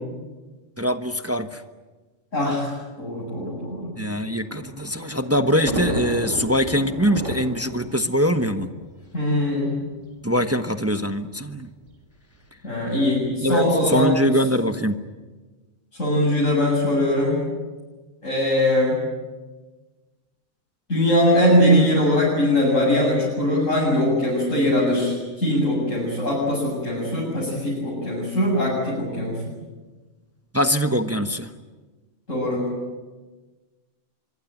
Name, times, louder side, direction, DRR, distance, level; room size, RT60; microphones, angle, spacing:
voice 1, 0.8-1.6 3.9-8.7 10.2-11.7 13.4-15.0 30.5-31.5, equal, 10° right, 8 dB, 1.0 m, -23 dB
voice 2, 2.3-2.7 3.0-3.9 9.1-9.7 12.6-14.1 16.0-17.4 18.2-19.0 20.9-29.4 32.3-32.6, left 1 dB, 80° left, -6 dB, 8.2 m, -21 dB
Thunder, 4.2-9.5 10.4-10.5 10.7-10.8 11.9-12.2, right 1 dB, 65° right, 4.5 m, -32 dB
24.5 x 24.5 x 9.0 m, 1.3 s
omnidirectional pair, 1.3 m